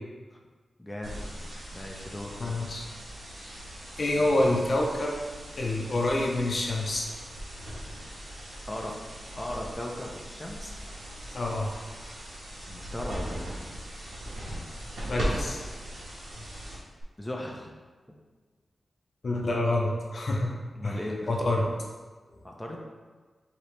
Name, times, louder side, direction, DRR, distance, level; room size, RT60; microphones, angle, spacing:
voice 1, 0.8-1.2 1.7-2.4 8.7-8.9 9.4-10.8 12.7-13.5 17.2-17.7 20.7-21.3 22.4-22.8, left 1 dB, 15° left, -1 dB, 0.7 m, -37 dB
sound 1, 1.0-17.0, equal, 85° right, 1.3 m, -39 dB
voice 2, 2.4-2.9 3.4-3.6 4.0-5.2 5.6-7.1 11.3-11.7 15.1-15.6 19.2-20.5 20.8-21.0 21.3-21.6, left 2 dB, 60° left, -1 dB, 0.6 m, -27 dB
4.9 x 2.9 x 3.2 m, 1.4 s
cardioid pair, 70°, 0 cm